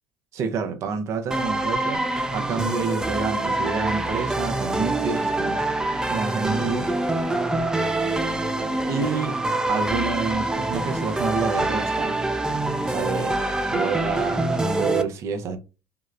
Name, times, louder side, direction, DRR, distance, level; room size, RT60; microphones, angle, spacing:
voice 1, 0.3-2.0 2.3-5.6 6.1-6.9 8.9-9.4 9.7-12.2 12.9-13.4 13.7-15.6, right 5 dB, 55° right, 0.6 m, -28 dB
sound 1, 1.3-15.0, right 2 dB, 10° right, 0.4 m, -25 dB
2.8 x 2.0 x 2.4 m
supercardioid pair, 80°, 6 cm